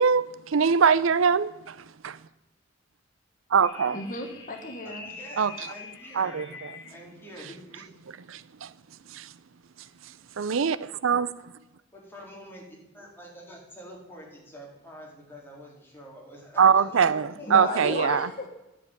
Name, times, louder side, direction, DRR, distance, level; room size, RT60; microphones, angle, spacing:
voice 1, 0.0-1.8 2.0-2.2 3.5-4.0 5.4-5.5 6.2-6.7 8.3-8.7 9.1-9.3 10.4-11.3 16.6-18.3, right 6 dB, 80° right, 0.5 m, -23 dB
sound 1, 3.6-7.1, left 5 dB, 60° left, 2.5 m, -44 dB
voice 2, 3.8-5.1 17.5-18.5, left 2 dB, 45° left, 1.4 m, -34 dB
voice 3, 4.8-6.5 6.9-7.9 11.9-18.0, equal, 10° left, 4.0 m, -46 dB
11.0 x 7.5 x 9.1 m
head